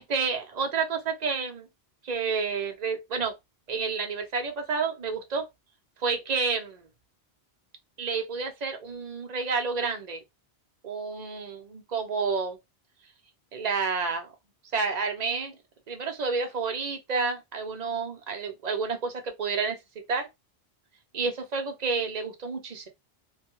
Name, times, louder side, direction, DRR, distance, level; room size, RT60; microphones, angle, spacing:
voice 1, 0.0-1.7 2.0-3.3 3.7-5.5 6.0-6.8 8.0-10.2 10.8-12.6 13.5-14.3 14.7-15.5 15.9-19.8 20.1-20.3 21.1-22.9, right 5 dB, 45° right, 0.7 m, -30 dB
2.7 x 2.3 x 3.0 m
omnidirectional pair, 1.1 m